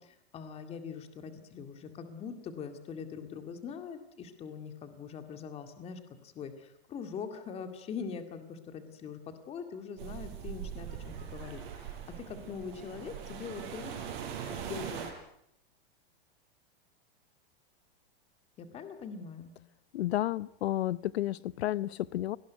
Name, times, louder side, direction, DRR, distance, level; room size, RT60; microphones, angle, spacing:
voice 1, 0.0-14.0 14.5-15.1 18.6-19.5, left 6 dB, 20° left, 2.1 m, -43 dB
sound 1, 10.0-15.1, right 8 dB, 50° right, 6.1 m, -41 dB
voice 2, 19.9-22.4, left 14 dB, 75° left, 0.8 m, -31 dB
23.0 x 19.0 x 9.5 m
supercardioid pair, 165°, 32 cm